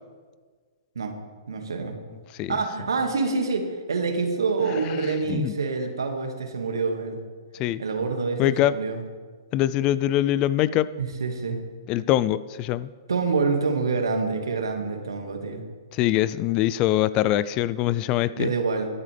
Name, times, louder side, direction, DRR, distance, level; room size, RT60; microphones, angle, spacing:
voice 1, 1.5-1.9 2.5-7.2 7.8-9.0 11.0-11.6 13.1-15.6 18.3-18.9, right 4 dB, 80° right, 4 dB, 2.0 m, -26 dB
voice 2, 8.4-8.7 9.5-10.9 11.9-12.9 15.9-18.5, left 13 dB, 35° left, 18 dB, 0.4 m, -23 dB
22.5 x 8.5 x 3.4 m, 1.5 s
hypercardioid pair, 120°, 2 cm